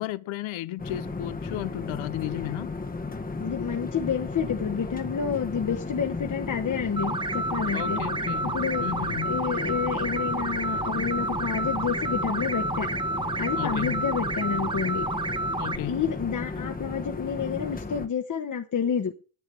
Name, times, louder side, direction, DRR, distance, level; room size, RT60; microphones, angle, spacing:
voice 1, 0.0-2.7 7.7-9.3 13.6-14.1 15.6-16.0, left 15 dB, 70° left, 0.8 m, -34 dB
sound 1, 0.8-18.1, left 3 dB, 15° left, 1.1 m, -35 dB
voice 2, 3.4-8.0 8.4-8.9 9.2-12.9 13.4-15.1 15.8-19.1, left 7 dB, 40° left, 1.3 m, -29 dB
sound 2, 7.0-15.8, right 2 dB, 10° right, 0.5 m, -30 dB
10.5 x 9.0 x 6.4 m
cardioid pair, 110°, 49 cm